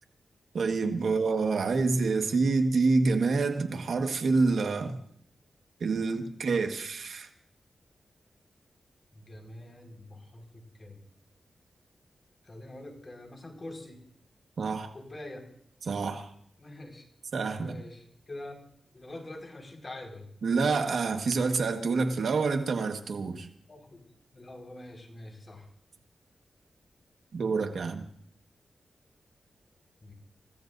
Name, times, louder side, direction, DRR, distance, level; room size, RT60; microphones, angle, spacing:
voice 1, 0.5-5.0 5.8-7.3 14.6-14.9 15.8-16.3 17.3-17.8 20.4-23.5 27.3-28.0, right 4 dB, 75° right, 5 dB, 1.5 m, -27 dB
voice 2, 9.1-11.0 12.4-14.0 14.9-15.5 16.6-17.0 17.6-18.6 18.9-20.3 23.7-24.0 24.3-25.7 30.0-30.1, left 1 dB, 40° left, 2 dB, 5.0 m, -45 dB
29.0 x 15.5 x 2.7 m, 0.64 s
cardioid pair, 60°, 0 cm